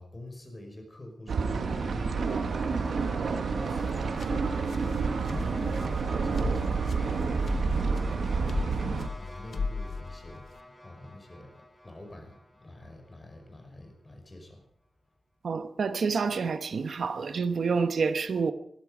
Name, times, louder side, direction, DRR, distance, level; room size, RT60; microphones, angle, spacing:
voice 1, 0.0-14.7, left 1 dB, 25° left, 5.2 m, -46 dB
sound 1, 1.3-9.1, right 5 dB, 85° right, 1.4 m, -29 dB
sound 2, 1.4-13.7, left 1 dB, 10° left, 5.8 m, -48 dB
sound 3, 3.7-10.6, left 4 dB, 70° left, 1.0 m, -39 dB
voice 2, 15.4-18.5, right 5 dB, 70° right, 1.1 m, -28 dB
21.0 x 13.0 x 5.1 m
wide cardioid pair, 115°, 0 cm